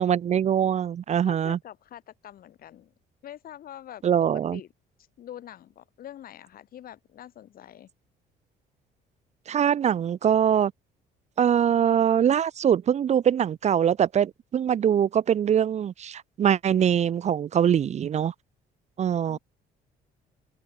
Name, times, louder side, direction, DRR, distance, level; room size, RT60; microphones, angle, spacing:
voice 1, 0.0-1.6 4.0-4.6 9.5-10.7 11.4-18.3 19.0-19.4, right 9 dB, 40° right, 0.7 m, -23 dB
voice 2, 1.2-2.9 3.2-4.0 4.5-4.7 5.2-7.9 19.2-19.4, left 11 dB, 60° left, 4.4 m, -44 dB
open air
cardioid pair, 110°, 17 cm